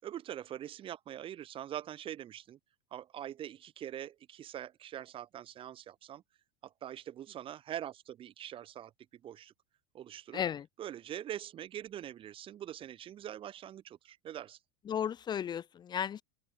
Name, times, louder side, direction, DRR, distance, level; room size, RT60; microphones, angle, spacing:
voice 1, 0.0-2.6 2.9-6.2 6.6-9.5 9.9-10.4 10.8-14.6, right 11 dB, 40° right, 4.0 m, -43 dB
voice 2, 10.3-10.6 14.9-16.2, left 8 dB, 30° left, 1.6 m, -34 dB
open air
supercardioid pair, 120°, 14 cm